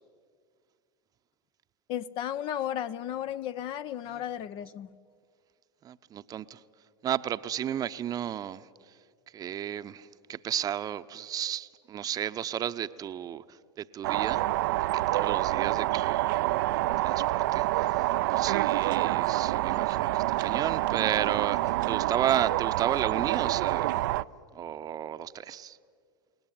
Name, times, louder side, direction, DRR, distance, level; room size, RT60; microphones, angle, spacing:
voice 1, 1.9-5.0, left 10 dB, 45° left, 14 dB, 0.9 m, -34 dB
voice 2, 5.8-6.6 7.0-8.7 9.3-14.4 14.8-18.0 18.3-24.1 24.5-25.8, right 10 dB, 30° right, 12 dB, 0.9 m, -33 dB
sound 1, 14.0-24.2, right 17 dB, 60° right, 0.6 m, -27 dB
29.5 x 18.5 x 9.2 m, 2.1 s
hypercardioid pair, 90°, 12 cm